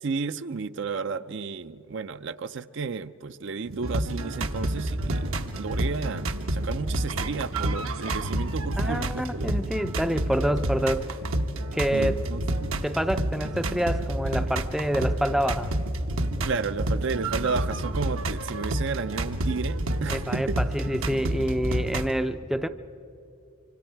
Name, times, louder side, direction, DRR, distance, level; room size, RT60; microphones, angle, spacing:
voice 1, 0.0-9.6 11.9-12.4 16.4-20.6, right 4 dB, 60° right, 12 dB, 0.5 m, -32 dB
sound 1, 3.6-22.1, right 1 dB, 75° right, 1.1 m, -29 dB
voice 2, 8.8-11.1 11.7-12.2 12.8-15.7 20.1-22.7, equal, ahead, 9 dB, 0.4 m, -27 dB
25.5 x 25.5 x 4.6 m, 2.8 s
head